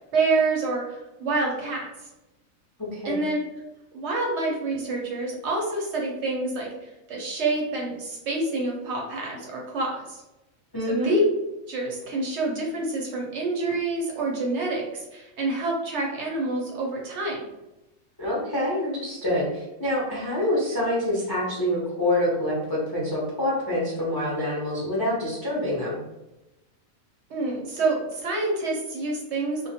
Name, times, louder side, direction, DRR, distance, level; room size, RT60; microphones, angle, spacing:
voice 1, 0.1-1.9 3.0-3.4 3.9-10.2 10.9-11.2 11.7-17.4 27.3-29.7, right 3 dB, 65° right, -1 dB, 0.8 m, -27 dB
voice 2, 10.7-11.2 18.2-26.0, left 1 dB, 35° left, -7 dB, 0.3 m, -26 dB
2.2 x 2.1 x 2.7 m, 0.97 s
omnidirectional pair, 1.4 m